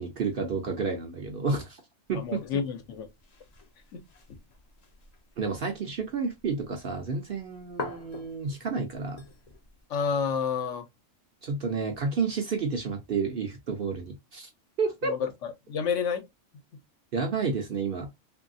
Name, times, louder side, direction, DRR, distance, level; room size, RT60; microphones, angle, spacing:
voice 1, 0.0-1.8 2.1-2.4 5.4-9.2 11.4-14.5 14.8-15.1 17.1-18.1, right 4 dB, 55° right, 0.7 m, -30 dB
voice 2, 2.1-3.1 3.9-4.0 4.3-4.4 9.9-10.9 15.0-16.2, left 6 dB, 70° left, 1.0 m, -30 dB
sound 1, 2.1-9.9, left 3 dB, 45° left, 0.6 m, -46 dB
3.0 x 2.7 x 2.5 m
omnidirectional pair, 1.4 m